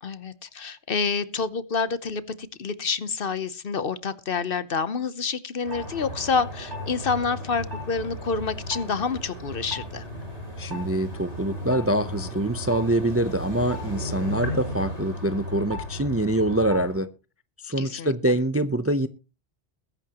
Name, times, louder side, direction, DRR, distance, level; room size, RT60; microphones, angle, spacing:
voice 1, 0.0-10.1 14.3-14.4 17.8-18.1, left 5 dB, 55° left, 1.0 m, -28 dB
sound 1, 5.6-17.0, equal, 75° right, 8.5 m, -35 dB
voice 2, 10.6-17.1 17.6-19.1, right 1 dB, 15° right, 0.5 m, -25 dB
21.0 x 10.5 x 2.9 m
omnidirectional pair, 1.2 m